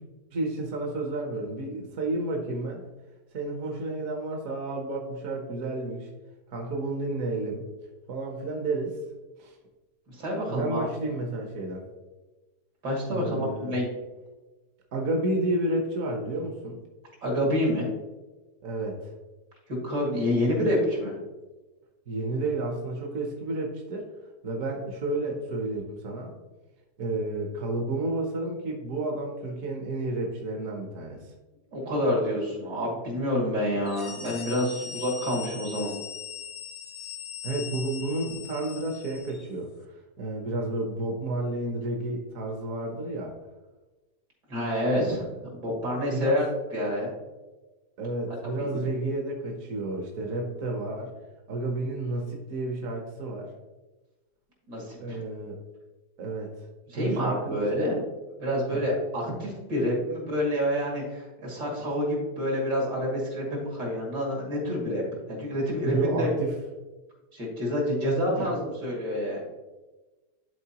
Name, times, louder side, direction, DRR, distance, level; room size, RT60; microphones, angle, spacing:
voice 1, 0.3-2.8 3.3-6.1 6.5-7.6 8.1-8.9 9.4-9.5 10.5-11.8 13.1-13.8 14.9-16.8 18.6-19.1 22.1-24.1 24.4-26.3 27.0-31.2 37.4-39.7 40.2-43.3 45.1-45.4 46.1-46.5 48.0-51.1 51.5-53.5 55.0-55.6 56.2-56.5 57.0-57.9 58.7-58.8 65.8-66.6 68.4-68.6, right 2 dB, 55° right, 1 dB, 1.3 m, -31 dB
voice 2, 10.1-10.9 12.8-13.9 17.2-17.9 19.8-21.1 31.7-35.9 44.5-46.5 46.7-47.1 48.6-48.7 54.7-55.2 56.9-58.0 58.4-65.0 65.3-66.3 67.3-69.4, left 1 dB, 80° right, -3 dB, 3.0 m, -28 dB
sound 1, 33.8-39.5, left 7 dB, 55° left, 0.8 m, -40 dB
11.0 x 4.2 x 2.9 m, 1.2 s
omnidirectional pair, 1.8 m